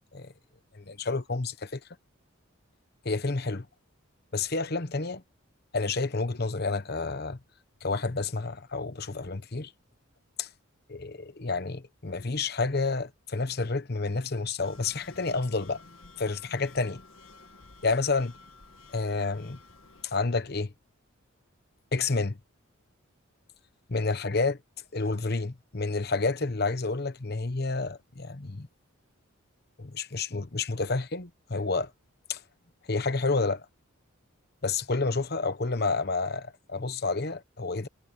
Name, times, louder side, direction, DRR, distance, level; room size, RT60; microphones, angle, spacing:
voice 1, 0.7-1.8 3.0-3.7 4.3-5.2 5.7-7.4 7.8-9.7 10.4-10.5 10.9-15.8 16.2-17.0 17.8-18.4 18.9-19.6 20.0-20.7 21.9-22.4 23.9-24.6 24.9-28.7 29.8-31.9 32.3-32.4 32.9-33.6 34.6-37.9, left 3 dB, 50° left, 1.0 m, -29 dB
sound 1, 14.6-20.0, left 3 dB, 70° left, 1.8 m, -53 dB
head